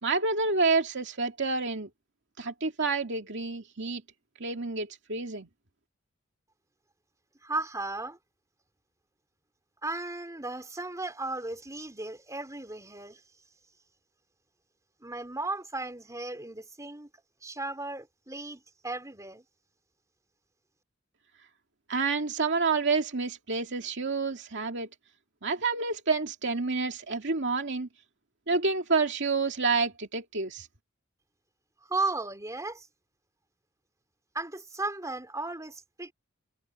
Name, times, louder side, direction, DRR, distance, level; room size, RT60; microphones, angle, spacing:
voice 1, 0.0-1.9 2.4-4.0 4.4-5.5 21.9-24.9 25.4-27.9 28.5-30.7, right 4 dB, 60° right, 2.4 m, -28 dB
voice 2, 7.4-8.2 9.8-13.2 15.0-17.1 17.4-19.4 31.9-32.9 34.3-36.1, right 2 dB, 15° right, 4.1 m, -35 dB
head